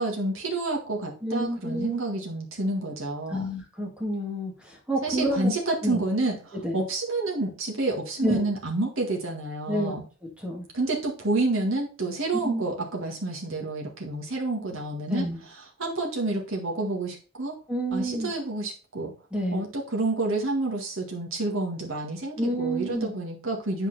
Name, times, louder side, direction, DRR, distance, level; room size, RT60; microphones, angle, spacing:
voice 1, 0.0-3.5 5.0-10.0 10.7-15.3 15.8-17.5 17.9-19.1 19.5-23.9, right 2 dB, 70° right, -1 dB, 1.8 m, -29 dB
voice 2, 1.2-2.0 3.3-5.5 5.8-6.0 6.5-6.8 8.2-8.4 9.7-9.9 10.2-10.7 12.4-12.6 15.1-15.4 17.7-18.3 19.3-19.6 22.4-23.1, equal, 5° right, -1 dB, 2.0 m, -29 dB
8.2 x 4.5 x 4.1 m, 0.36 s
head